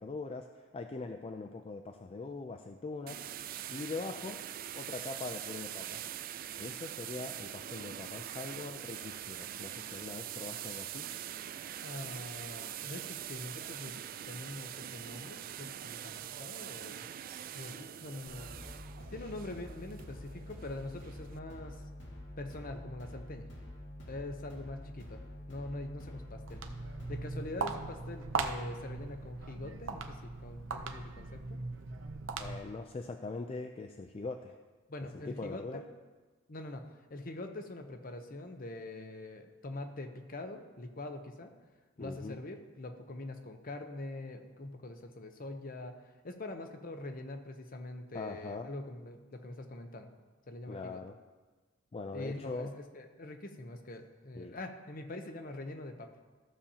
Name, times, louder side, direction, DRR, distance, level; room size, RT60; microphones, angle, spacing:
voice 1, 0.0-3.4 3.7-4.4 4.8-6.0 6.6-11.1 32.4-34.6 35.1-35.8 42.0-42.4 48.1-48.7 50.7-51.2 51.9-52.7 54.4-54.6, left 3 dB, 30° left, 5 dB, 0.4 m, -42 dB
sound 1, 3.1-21.4, right 11 dB, 50° right, 0.3 m, -43 dB
voice 2, 11.8-14.0 14.3-17.1 17.5-18.5 19.1-21.8 22.4-23.5 24.1-25.2 25.5-26.6 27.1-31.6 34.9-35.8 36.5-41.5 42.0-50.1 50.5-51.0 52.1-56.1, left 2 dB, 45° left, 6 dB, 0.8 m, -44 dB
sound 2, 18.3-27.5, left 1 dB, 65° left, 1.9 m, -47 dB
Walk footsteps, 26.3-32.8, right 4 dB, 85° right, 0.7 m, -39 dB
14.0 x 6.9 x 2.9 m, 1.3 s
head